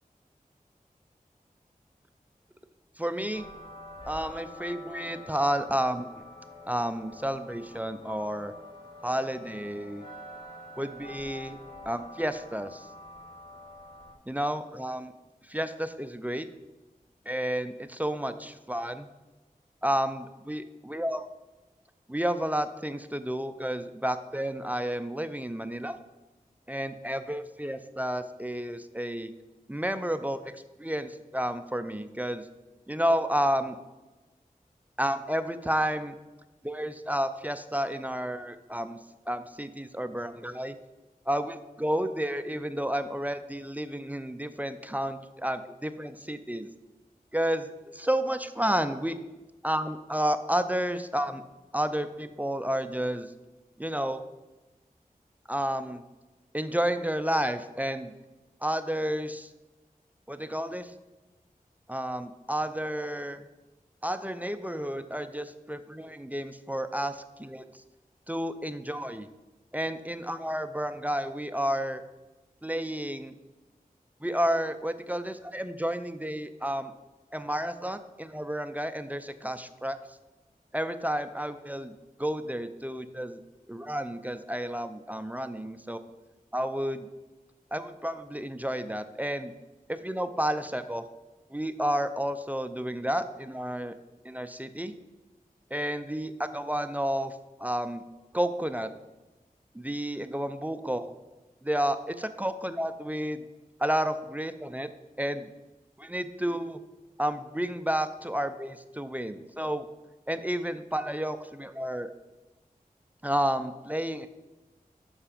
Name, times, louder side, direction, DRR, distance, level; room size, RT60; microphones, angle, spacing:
voice 1, 3.0-3.5 4.1-6.1 6.7-8.5 9.0-10.0 10.8-11.6 11.9-12.9 14.3-15.1 15.4-16.5 17.3-19.1 19.8-20.6 20.9-21.2 22.1-26.0 26.7-29.3 29.7-30.5 30.8-32.4 32.9-33.8 35.0-36.2 36.6-39.0 39.3-40.8 41.3-46.7 47.3-49.2 49.6-51.4 51.7-53.3 53.8-54.2 55.5-56.0 56.5-58.1 58.6-59.5 60.3-60.9 61.9-63.5 64.0-67.6 68.3-69.3 69.7-72.0 72.6-73.3 74.2-76.9 77.3-80.0 80.7-81.9 82.2-83.4 83.7-86.0 86.5-87.1 87.7-89.5 89.9-91.0 91.5-93.9 94.2-94.9 95.7-98.0 98.3-98.9 99.7-101.1 101.6-103.4 103.8-104.9 105.2-105.5 106.0-106.8 107.2-109.9 110.3-112.1 113.2-114.3, equal, 10° right, 10 dB, 0.5 m, -31 dB
sound 1, 3.3-14.1, left 1 dB, 35° left, 1.9 m, -46 dB
7.3 x 5.8 x 5.1 m, 1.1 s
wide cardioid pair, 60°, 15 cm